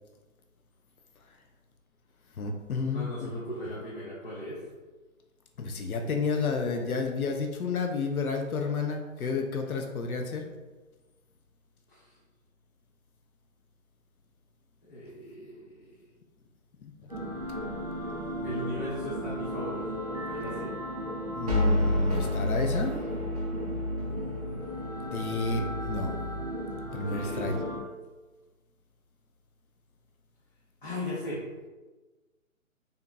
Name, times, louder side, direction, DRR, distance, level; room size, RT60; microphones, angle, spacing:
voice 1, 2.4-3.3 5.6-10.5 16.8-16.9 21.4-23.0 25.1-26.1 26.9-27.5, left 4 dB, 85° left, 4 dB, 0.6 m, -31 dB
voice 2, 2.9-4.6 11.9-12.0 14.8-16.1 18.4-19.9 20.3-20.7 27.0-27.5 30.8-31.4, left 1 dB, 40° left, -7 dB, 0.8 m, -37 dB
sound 1, 17.1-27.8, equal, 30° right, 0.5 m, -32 dB
4.0 x 3.6 x 2.2 m, 1.2 s
hypercardioid pair, 170°, 42 cm